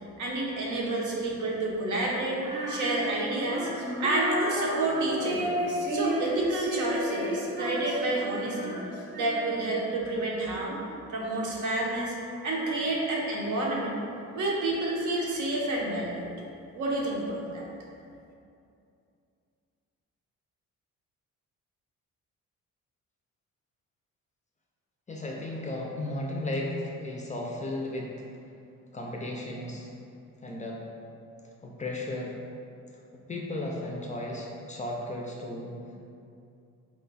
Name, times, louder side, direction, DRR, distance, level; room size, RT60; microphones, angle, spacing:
voice 1, 0.2-5.5 5.9-8.8 9.1-10.8 11.1-12.1 12.4-14.0 14.3-16.3 16.8-17.7, right 2 dB, 65° right, -2 dB, 0.8 m, -29 dB
Female singing, 2.4-9.7, equal, 35° right, 0.7 m, -32 dB
voice 2, 25.1-28.1 28.9-29.9 30.4-30.8 31.6-32.4 33.3-35.8, left 1 dB, 25° left, -2 dB, 0.4 m, -34 dB
4.4 x 2.2 x 3.9 m, 2.5 s
cardioid pair, 125°, 32 cm